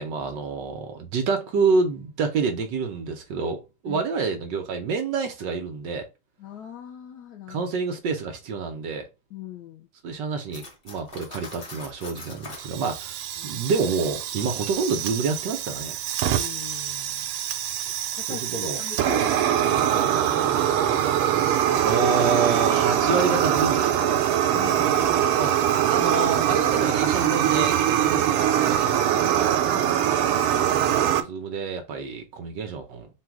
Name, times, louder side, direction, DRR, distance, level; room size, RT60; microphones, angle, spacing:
voice 1, 0.0-6.0 7.5-9.1 10.0-13.2 13.4-16.0 18.3-18.8 21.8-24.2 25.4-25.5 25.9-29.6 30.8-33.1, right 4 dB, 65° right, 1.3 m, -28 dB
voice 2, 6.4-7.6 9.3-9.9 13.4-13.6 16.3-17.3 18.2-21.4 24.5-25.4 29.7-30.2, left 10 dB, 80° left, 0.8 m, -41 dB
Cutlery silverware, 10.5-12.7, left 2 dB, 35° left, 0.9 m, -42 dB
Fire, 12.6-31.2, right 10 dB, 85° right, 1.5 m, -23 dB
4.0 x 2.3 x 4.5 m
omnidirectional pair, 2.3 m